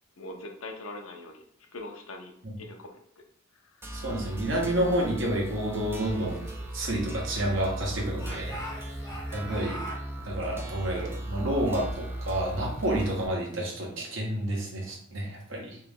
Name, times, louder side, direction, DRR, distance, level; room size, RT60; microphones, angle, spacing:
voice 1, 0.2-1.4 1.7-2.3 2.6-2.9 3.6-3.8, left 2 dB, 70° left, 2 dB, 0.7 m, -41 dB
sound 1, 3.8-13.3, right 1 dB, 10° right, 0.4 m, -37 dB
voice 2, 3.9-6.4 6.7-8.6 9.3-9.8 10.2-15.8, right 1 dB, 60° right, -1 dB, 1.1 m, -29 dB
Speech / Shout, 6.2-7.7 8.1-10.0, equal, 20° left, 0.7 m, -43 dB
3.3 x 3.0 x 3.5 m, 0.65 s
head